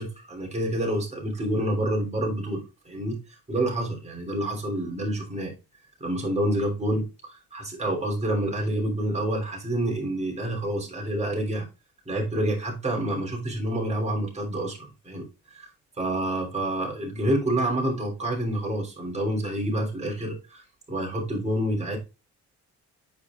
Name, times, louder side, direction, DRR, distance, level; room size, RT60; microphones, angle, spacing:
voice 1, 0.0-3.2 3.5-5.6 6.0-11.7 12.0-15.7 16.0-22.0, right 1 dB, 20° right, 3.1 m, -28 dB
8.5 x 5.6 x 2.4 m
cardioid pair, 90°, 30 cm